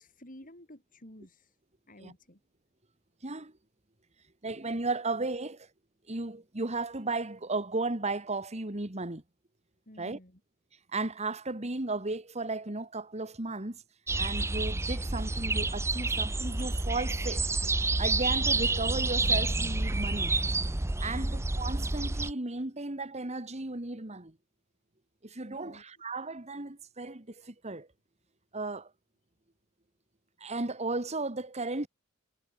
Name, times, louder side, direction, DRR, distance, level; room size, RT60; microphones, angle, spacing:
voice 1, 0.0-1.5 1.9-2.4 9.9-10.4 25.5-25.8, left 1 dB, 40° left, 6.7 m, -52 dB
voice 2, 3.2-3.5 4.4-5.7 6.1-9.2 10.0-10.2 10.9-13.8 14.1-17.5 18.0-20.3 21.0-24.3 25.2-27.9 28.5-28.9 30.4-31.9, right 3 dB, 30° right, 1.8 m, -35 dB
sound 1, 14.1-22.3, right 2 dB, 10° right, 0.5 m, -29 dB
head